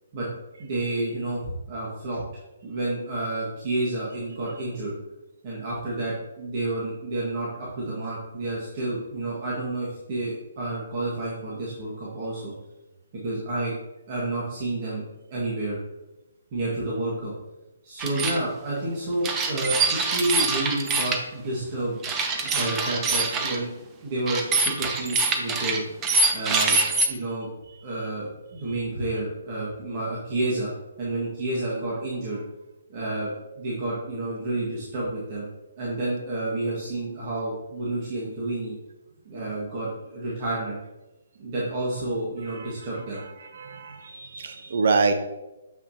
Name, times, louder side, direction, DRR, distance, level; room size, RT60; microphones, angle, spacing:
voice 1, 0.6-2.2 2.6-4.9 5.4-12.5 13.2-13.7 14.1-15.0 15.3-15.8 16.5-17.3 17.8-22.0 22.4-23.7 24.0-25.8 26.3-26.8 27.1-27.5 27.8-30.7 31.0-32.4 32.9-33.3 33.6-35.5 35.8-38.7 39.2-40.8 41.4-43.2, right 2 dB, 40° right, -7 dB, 1.6 m, -30 dB
sound 1, 18.0-18.4 19.2-21.2 22.0-23.6 24.3-27.1, right 3 dB, 20° right, 0.7 m, -24 dB
voice 2, 43.6-45.1, right 4 dB, 60° right, 7 dB, 0.7 m, -25 dB
7.0 x 5.7 x 2.8 m, 1.0 s
hypercardioid pair, 140°, 0 cm